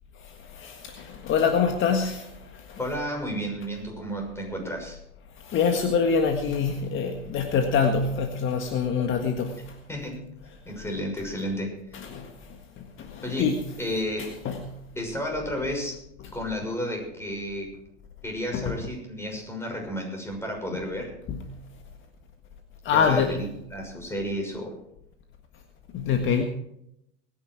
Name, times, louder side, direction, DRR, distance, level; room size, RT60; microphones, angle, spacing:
voice 1, 0.2-2.8 5.4-9.8 12.1-13.6 14.4-14.6 18.5-18.8 21.3-21.4 22.8-23.3 25.9-26.4, left 6 dB, 40° left, 5 dB, 1.7 m, -25 dB
voice 2, 2.8-5.0 9.9-10.4 10.7-12.0 13.2-14.4 15.0-17.8 18.2-21.2 22.9-24.8, equal, 10° left, 2 dB, 6.2 m, -32 dB
21.0 x 10.5 x 4.7 m, 0.79 s
hypercardioid pair, 100°, 29 cm